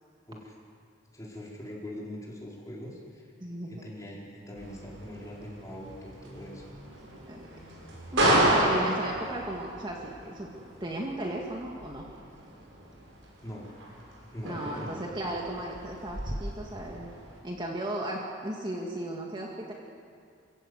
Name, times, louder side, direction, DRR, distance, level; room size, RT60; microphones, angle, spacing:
voice 1, 1.1-3.3 3.7-6.7 13.4-13.7 14.0-15.0, left 1 dB, 15° left, -4 dB, 4.9 m, -42 dB
voice 2, 3.4-3.8 7.3-7.5 8.1-12.1 14.4-17.1 17.4-19.7, right 1 dB, 25° right, -1 dB, 2.0 m, -35 dB
sound 1, 4.6-17.4, right 1 dB, 80° right, 6.5 m, -32 dB
27.5 x 16.5 x 8.3 m, 2.3 s
head